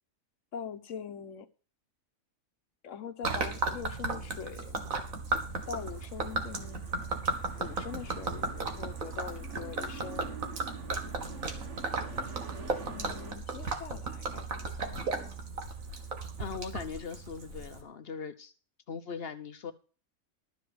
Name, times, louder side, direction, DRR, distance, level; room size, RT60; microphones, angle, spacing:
voice 1, 0.5-1.5 2.8-4.8 5.7-6.8 7.6-10.4 12.9-15.4, left 8 dB, 70° left, 1.3 m, -43 dB
Gurgling / Liquid, 3.2-17.8, right 3 dB, 80° right, 2.0 m, -35 dB
sound 1, 5.5-13.3, right 5 dB, 60° right, 1.7 m, -46 dB
voice 2, 16.4-18.5 18.9-19.7, left 6 dB, 50° left, 0.9 m, -40 dB
12.5 x 5.0 x 7.7 m
omnidirectional pair, 1.4 m